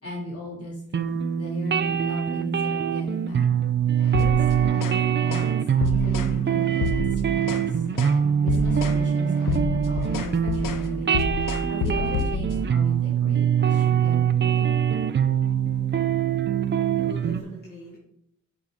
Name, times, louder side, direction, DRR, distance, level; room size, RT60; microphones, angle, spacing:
voice 1, 0.0-3.6 3.9-7.9 8.4-14.7, equal, 50° left, -4 dB, 3.6 m, -37 dB
sound 1, 0.9-17.4, right 8 dB, 35° right, 0.4 m, -23 dB
sound 2, 4.1-5.0 5.3-5.5 5.8-6.4 6.7-7.7 8.0-8.2 8.5-9.0 9.3-12.6, left 4 dB, 85° left, 0.8 m, -29 dB
voice 2, 16.6-18.0, right 1 dB, 30° left, -6 dB, 2.2 m, -43 dB
7.4 x 4.8 x 5.1 m, 0.69 s
wide cardioid pair, 130°, 31 cm